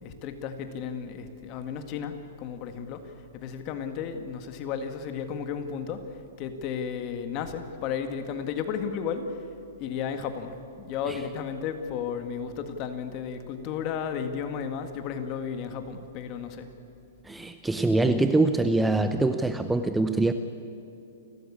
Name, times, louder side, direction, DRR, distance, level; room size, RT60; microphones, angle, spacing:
voice 1, 0.0-9.5 9.8-16.7, left 7 dB, 35° left, 7 dB, 2.0 m, -34 dB
voice 2, 17.2-20.3, right 2 dB, 5° right, 9 dB, 0.6 m, -24 dB
29.0 x 13.5 x 8.8 m, 2.6 s
hypercardioid pair, 150°, 0 cm